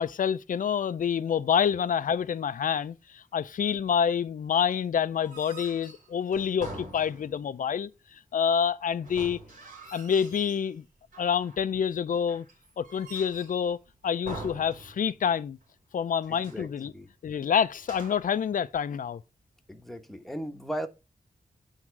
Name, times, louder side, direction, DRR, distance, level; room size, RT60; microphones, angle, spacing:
voice 1, 0.0-7.9 8.3-9.4 9.9-10.8 11.2-12.5 12.8-13.8 14.0-15.6 15.9-16.9 17.2-19.2, left 7 dB, 75° left, 0.5 m, -27 dB
sound 1, 5.1-7.6 9.0-10.7 11.1-11.7 12.3-13.7 14.3-15.4 15.6-15.7 16.2-16.7 17.8-18.4, right 2 dB, 70° right, 3.4 m, -45 dB
voice 2, 16.3-17.1 19.7-20.9, equal, ahead, 1.1 m, -37 dB
9.0 x 3.6 x 5.9 m
wide cardioid pair, 130°, 14 cm